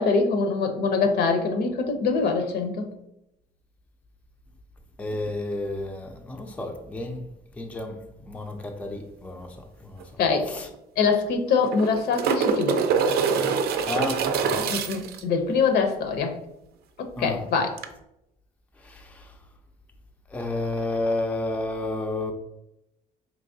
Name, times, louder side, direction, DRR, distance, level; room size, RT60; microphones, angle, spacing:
voice 1, 0.0-2.8 10.2-10.5 11.0-12.8 14.6-16.3 17.2-17.8, left 4 dB, 70° left, 0.7 m, -24 dB
voice 2, 5.0-7.3 7.6-10.0 10.4-10.7 13.9-14.6 17.2-17.5 18.8-19.3 20.3-22.3, left 2 dB, 10° left, 0.4 m, -31 dB
sound 1, 10.0-10.1 10.4-10.5 11.5-15.2 17.8-17.9, right 6 dB, 70° right, 0.5 m, -25 dB
4.7 x 3.0 x 2.6 m
cardioid pair, 110°, 17 cm